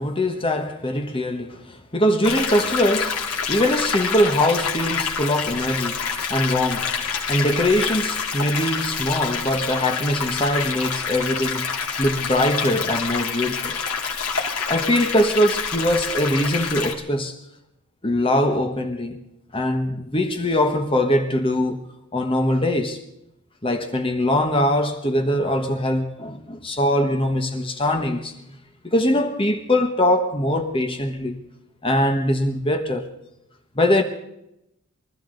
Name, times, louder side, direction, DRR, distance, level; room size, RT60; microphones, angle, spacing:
voice 1, 0.0-6.9 7.3-13.7 14.7-17.3 18.0-19.2 19.5-21.8 22.1-23.0 23.6-28.3 28.8-31.4 31.8-33.1 33.7-34.0, left 1 dB, 25° left, 1.2 m, -22 dB
sound 1, 2.2-16.9, left 6 dB, 85° left, 2.3 m, -27 dB
24.0 x 13.5 x 3.9 m
head